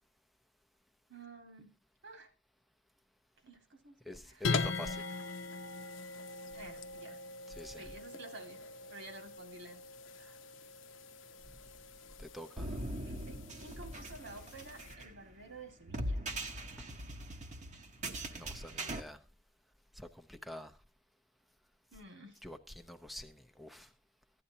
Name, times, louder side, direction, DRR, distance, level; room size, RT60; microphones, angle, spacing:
voice 1, 1.1-1.8 2.0-2.3 3.4-4.5 6.5-7.2 7.7-8.6 8.9-9.8 10.2-10.4 13.1-16.2 18.8-19.2 21.9-22.4, right 2 dB, 65° right, 2.1 m, -52 dB
voice 2, 4.0-5.0 7.5-7.9 12.2-12.8 18.3-19.2 19.9-20.7 22.4-23.9, left 1 dB, ahead, 0.7 m, -47 dB
sound 1, 4.4-14.9, left 4 dB, 70° left, 0.8 m, -41 dB
sound 2, 12.6-19.0, right 1 dB, 40° right, 1.0 m, -41 dB
15.5 x 11.0 x 2.8 m
head